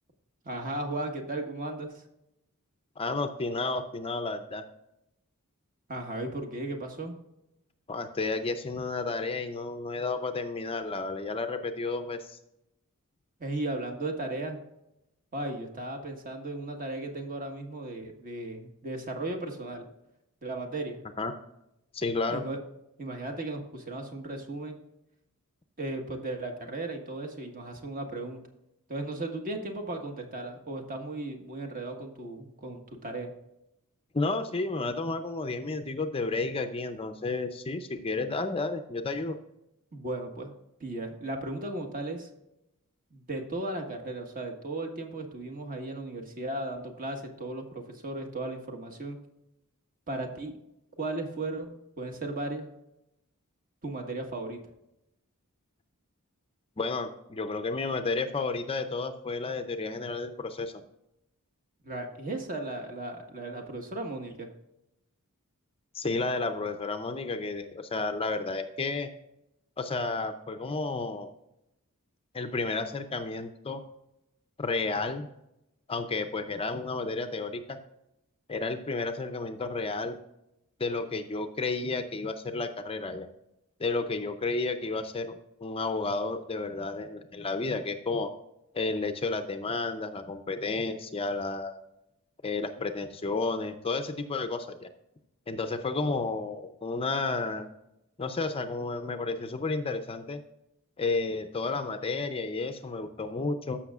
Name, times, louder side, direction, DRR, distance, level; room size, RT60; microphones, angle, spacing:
voice 1, 0.4-2.0 5.9-7.1 13.4-14.6 15.3-19.8 20.4-21.0 22.3-22.6 23.0-24.8 25.8-28.4 28.9-33.3 39.9-40.5 40.8-42.3 43.1-49.2 50.1-50.5 51.0-52.7 53.8-54.6 61.8-64.5, right 2 dB, 40° right, 3 dB, 1.5 m, -36 dB
voice 2, 3.0-4.6 7.9-12.4 21.2-21.3 21.9-22.4 34.1-39.4 56.8-60.8 65.9-69.1 69.8-71.3 72.3-73.8 74.6-75.3 75.9-77.8 78.5-80.2 80.8-83.3 83.8-88.3 88.7-91.8 92.4-94.9 95.5-97.7 98.2-100.4 101.0-103.8, left 3 dB, 25° left, 8 dB, 0.5 m, -32 dB
14.0 x 6.2 x 2.4 m, 0.85 s
head